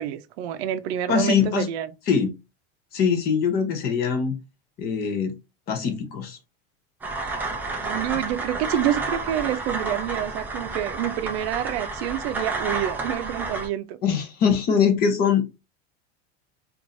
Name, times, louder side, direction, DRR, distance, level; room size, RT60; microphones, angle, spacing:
voice 1, 0.0-1.9 7.8-14.0, right 11 dB, 75° right, 0.6 m, -28 dB
voice 2, 1.1-1.7 2.1-2.3 2.9-4.4 4.8-5.4 5.7-6.4 14.0-15.4, left 7 dB, 30° left, 0.7 m, -22 dB
sound 1, 7.0-13.7, right 3 dB, 5° right, 0.3 m, -30 dB
4.6 x 2.6 x 2.6 m
supercardioid pair, 165°, 32 cm